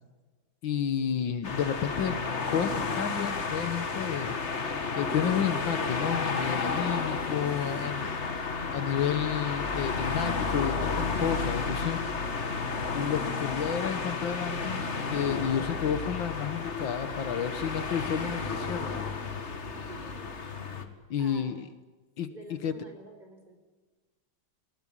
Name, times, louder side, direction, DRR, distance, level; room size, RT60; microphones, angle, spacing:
voice 1, 0.6-2.2 2.5-8.1 8.7-12.0 12.9-19.1 21.1-21.6 22.2-22.3 22.6-22.7, left 8 dB, 70° left, 11 dB, 1.8 m, -31 dB
sound 1, 1.4-20.8, left 4 dB, 35° left, 1.8 m, -32 dB
voice 2, 7.1-8.3 19.9-20.3 21.2-21.6 22.3-23.5, right 1 dB, 20° right, 4 dB, 4.9 m, -49 dB
20.0 x 17.5 x 9.9 m, 1.3 s
omnidirectional pair, 2.2 m